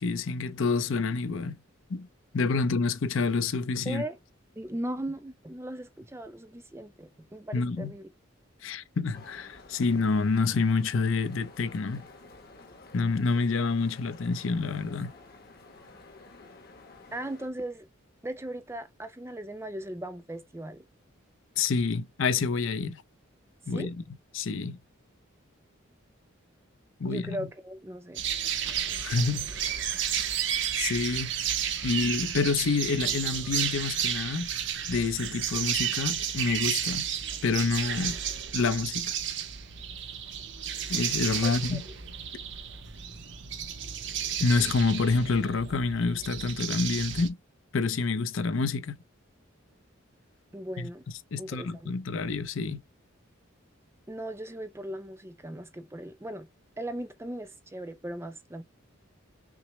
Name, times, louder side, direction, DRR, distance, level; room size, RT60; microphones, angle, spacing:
voice 1, 0.0-1.6 1.9-2.1 2.3-4.0 7.5-7.9 8.6-12.0 12.9-15.1 21.6-23.0 23.7-23.9 24.3-24.8 27.0-27.4 29.0-29.5 30.8-31.4 31.8-34.5 34.9-37.1 37.4-38.2 38.5-39.2 40.9-41.8 44.4-47.4 47.7-49.0 50.8-50.9 51.3-52.8, left 4 dB, 70° left, 0.5 m, -28 dB
voice 2, 3.9-4.2 4.6-8.1 17.1-17.9 18.2-20.8 23.7-23.9 27.0-28.7 41.4-41.8 50.5-51.1 51.4-51.9 54.1-56.5 56.8-58.6, right 1 dB, 10° right, 0.4 m, -38 dB
sound 1, 9.1-17.5, left 3 dB, 45° left, 0.9 m, -51 dB
sound 2, 28.1-47.3, right 9 dB, 55° right, 0.6 m, -32 dB
5.9 x 2.0 x 3.0 m
head